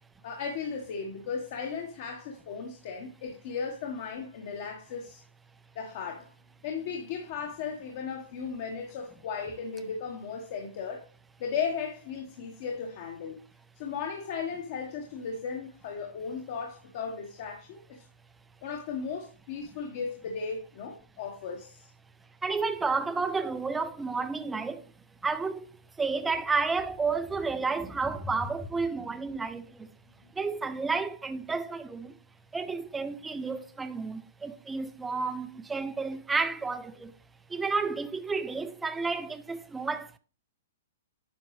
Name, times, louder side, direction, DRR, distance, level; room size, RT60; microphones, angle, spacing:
voice 1, 0.2-5.2 5.7-6.3 6.6-11.0 11.4-13.4 13.8-18.0 18.6-21.9, left 6 dB, 40° left, 1.2 m, -36 dB
voice 2, 22.4-24.9 25.2-25.7 26.0-29.9 30.3-32.2 32.5-37.2 37.5-40.2, right 4 dB, 5° right, 0.4 m, -31 dB
9.8 x 6.0 x 3.1 m
hypercardioid pair, 170°, 0 cm